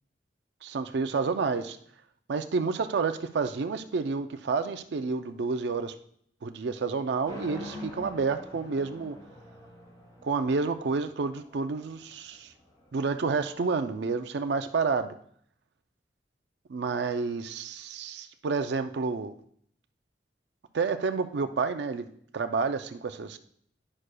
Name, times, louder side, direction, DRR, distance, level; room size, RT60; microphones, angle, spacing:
voice 1, 0.6-1.8 2.3-6.0 6.4-9.2 10.2-12.5 12.9-15.1 16.7-19.3 20.7-22.1 22.3-23.4, right 4 dB, 70° right, 8 dB, 0.4 m, -29 dB
sound 1, 7.2-13.3, left 1 dB, 20° left, 2.6 m, -45 dB
9.8 x 6.4 x 2.2 m, 0.63 s
head